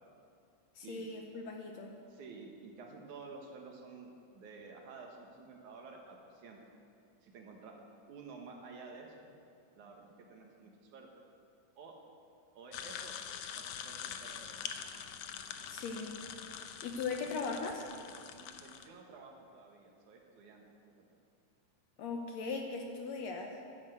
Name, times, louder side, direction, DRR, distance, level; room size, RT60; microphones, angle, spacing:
voice 1, 0.8-2.0 15.7-16.2 16.8-17.9 22.0-23.6, left 4 dB, 65° left, 2 dB, 1.9 m, -39 dB
voice 2, 2.1-6.6 7.2-7.8 8.1-9.4 9.7-11.1 11.8-12.0 12.5-15.0 17.2-17.3 18.3-21.0, right 4 dB, 70° right, 1 dB, 2.8 m, -52 dB
sound 1, 12.7-18.9, left 8 dB, 90° left, 1.4 m, -44 dB
11.5 x 10.0 x 7.9 m, 2.4 s
omnidirectional pair, 3.8 m